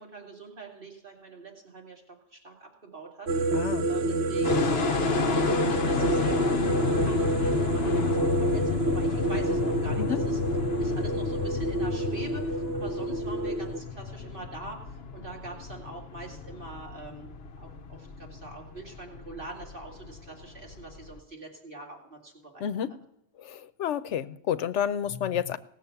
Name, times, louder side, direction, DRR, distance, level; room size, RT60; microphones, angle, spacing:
voice 1, 0.0-10.4 10.8-17.3 17.6-22.7, right 3 dB, 50° right, -1 dB, 2.5 m, -43 dB
sound 1, 3.3-13.8, right 2 dB, 75° right, 1.1 m, -28 dB
voice 2, 3.5-3.9 10.0-10.2 22.6-22.9 23.4-25.6, left 9 dB, 90° left, 13 dB, 1.0 m, -30 dB
sound 2, 4.4-21.2, left 5 dB, 65° left, 1.0 m, -31 dB
17.5 x 7.4 x 7.0 m, 0.76 s
omnidirectional pair, 1.2 m